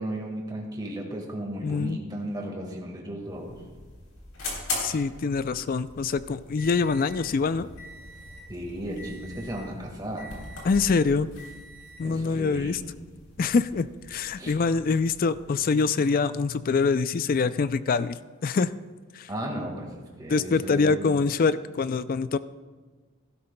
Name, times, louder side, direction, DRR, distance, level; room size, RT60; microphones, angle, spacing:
voice 1, 0.0-3.6 8.5-10.4 12.0-12.9 14.4-14.5 19.3-21.2, right 1 dB, 20° right, 1 dB, 1.7 m, -35 dB
voice 2, 1.6-2.0 4.8-7.7 10.6-11.3 12.0-12.8 13.4-18.7 19.1-19.3 20.3-22.4, left 4 dB, 40° left, 14 dB, 0.3 m, -25 dB
sound 1, 3.2-15.6, left 2 dB, 75° left, 3.6 m, -41 dB
16.5 x 12.0 x 2.2 m, 1.4 s
head